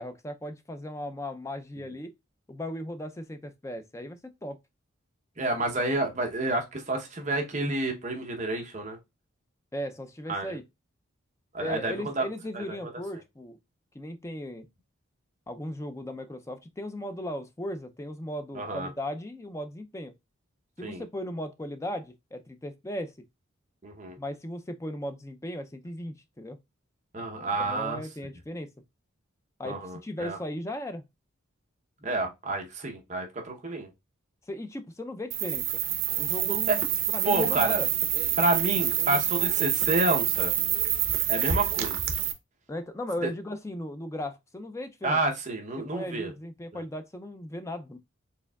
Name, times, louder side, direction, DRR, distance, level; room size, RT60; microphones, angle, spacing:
voice 1, 0.0-2.1 2.5-4.6 9.7-10.6 11.6-13.6 13.9-14.7 15.5-20.1 20.8-23.1 24.2-26.6 27.6-28.7 29.6-31.0 34.5-35.8 36.2-37.9 42.7-45.2 45.8-48.0, left 1 dB, 15° left, 0.4 m, -37 dB
voice 2, 5.4-9.0 10.3-10.6 11.5-12.2 12.5-12.6 18.5-18.9 20.8-21.0 23.8-24.1 27.1-28.0 29.6-30.4 32.0-33.9 36.5-36.8 37.2-37.8 38.4-40.5 41.3-42.0 43.2-43.3 45.0-46.3 46.7-46.8, right 2 dB, 35° right, 0.8 m, -29 dB
sound 1, 35.3-42.3, right 11 dB, 65° right, 0.7 m, -27 dB
4.5 x 3.5 x 2.2 m
head